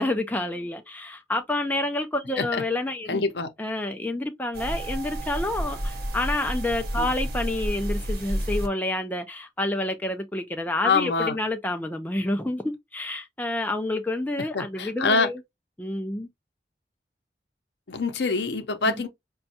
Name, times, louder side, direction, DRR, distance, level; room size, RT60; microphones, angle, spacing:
voice 1, 0.0-3.2 3.6-15.4 15.8-16.3 18.8-19.1, left 1 dB, 10° left, 0.4 m, -29 dB
voice 2, 3.1-3.5 7.0-7.1 10.8-11.4 14.5-15.3 17.9-19.1, left 4 dB, 75° left, 0.6 m, -25 dB
sound 1, 4.5-8.7, equal, 60° right, 0.9 m, -30 dB
5.1 x 2.3 x 2.7 m
head